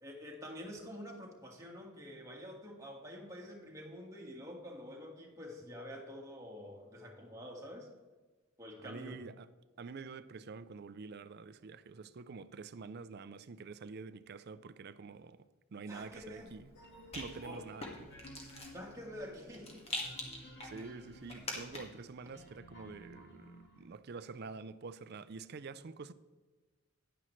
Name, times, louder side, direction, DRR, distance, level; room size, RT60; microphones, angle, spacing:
voice 1, 0.0-7.9 8.6-9.2 15.9-16.5 17.3-17.6 18.7-19.9, equal, 15° right, 1.7 m, -47 dB
voice 2, 8.8-9.5 9.8-15.5 15.7-16.7 17.1-18.1 20.6-26.1, right 4 dB, 50° right, 0.4 m, -47 dB
Rattle, 16.0-22.1, left 1 dB, 30° left, 1.7 m, -46 dB
sound 1, 16.7-23.9, right 1 dB, 50° left, 2.3 m, -54 dB
10.5 x 9.8 x 3.1 m
head